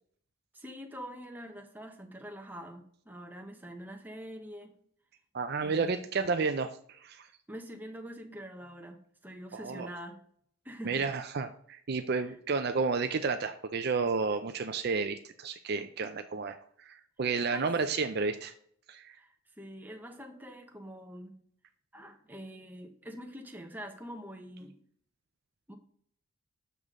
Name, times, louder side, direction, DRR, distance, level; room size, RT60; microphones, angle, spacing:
voice 1, 0.5-4.7 5.6-6.0 7.5-9.0 9.2-10.2 10.6-11.1 12.2-12.3 17.5-17.7 19.1-21.4 21.9-24.8 25.7-25.8, equal, 10° right, 4 dB, 0.9 m, -45 dB
voice 2, 5.3-7.3 9.5-9.9 10.9-18.5 18.9-19.2, right 4 dB, 50° right, 8 dB, 0.4 m, -31 dB
8.2 x 6.7 x 3.7 m, 0.62 s
head